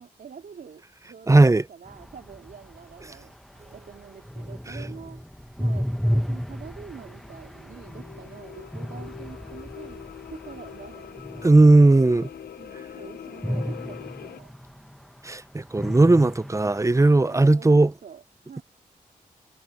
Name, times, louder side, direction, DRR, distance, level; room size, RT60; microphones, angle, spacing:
voice 1, 0.0-3.4 3.7-11.5 12.6-14.5 17.3-18.6, right 7 dB, 70° right, 3.0 m, -46 dB
voice 2, 1.3-1.6 11.4-12.3 15.2-17.9, right 2 dB, 20° right, 0.8 m, -17 dB
sound 1, 1.9-12.1 13.4-15.3 15.7-17.3, equal, ahead, 1.5 m, -33 dB
sound 2, 3.5-5.1, right 4 dB, 45° right, 5.8 m, -57 dB
sound 3, 6.3-14.4, left 8 dB, 75° left, 0.8 m, -43 dB
supercardioid pair, 45°, 16 cm